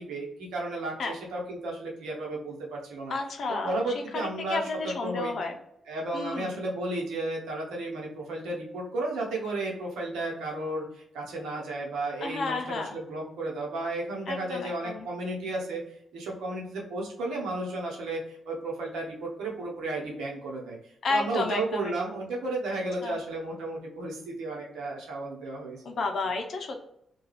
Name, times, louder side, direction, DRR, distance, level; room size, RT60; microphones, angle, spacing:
voice 1, 0.0-3.1 3.6-5.3 5.9-26.0, right 2 dB, 85° right, -2 dB, 0.8 m, -33 dB
voice 2, 3.1-3.8 4.1-5.5 6.1-6.6 12.2-12.9 14.3-15.0 21.0-21.9 23.0-23.1 25.9-26.8, left 3 dB, 65° left, 4 dB, 0.5 m, -31 dB
2.3 x 2.3 x 3.1 m, 0.75 s
supercardioid pair, 55°, 0 cm